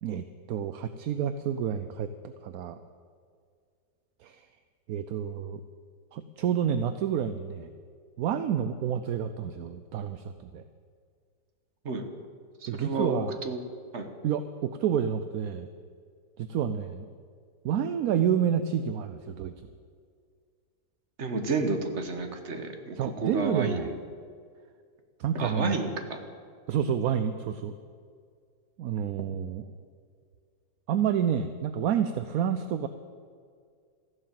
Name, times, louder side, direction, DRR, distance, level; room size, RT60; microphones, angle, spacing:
voice 1, 0.0-2.8 4.2-4.4 4.9-5.6 6.1-7.7 8.2-10.6 12.7-13.4 14.2-15.7 16.4-17.1 17.6-19.5 23.0-23.9 25.2-25.8 26.7-27.7 28.8-29.6 30.9-32.9, right 8 dB, 70° right, 10 dB, 1.0 m, -29 dB
voice 2, 12.6-13.6 13.9-14.1 21.2-23.9 25.3-26.2, right 3 dB, 40° right, 6 dB, 1.6 m, -31 dB
14.5 x 11.0 x 7.6 m, 2.1 s
omnidirectional pair, 1.9 m